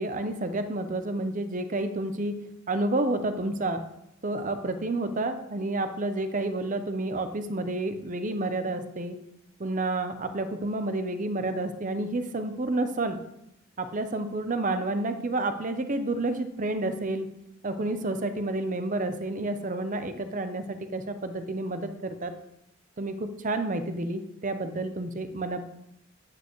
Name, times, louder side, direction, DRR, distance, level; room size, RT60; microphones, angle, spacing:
voice 1, 0.0-2.4 2.7-3.8 4.2-9.2 9.6-13.2 13.8-17.3 17.6-22.3 23.0-25.6, right 2 dB, 35° right, 9 dB, 0.7 m, -30 dB
9.3 x 8.5 x 3.1 m, 0.82 s
head